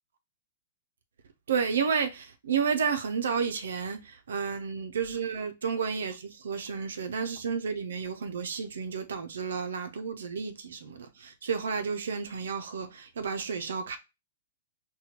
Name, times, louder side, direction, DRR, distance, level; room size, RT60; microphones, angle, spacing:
voice 1, 1.5-14.0, right 6 dB, 85° right, 0.4 m, -31 dB
4.2 x 2.2 x 2.8 m
hypercardioid pair, 150°, 0 cm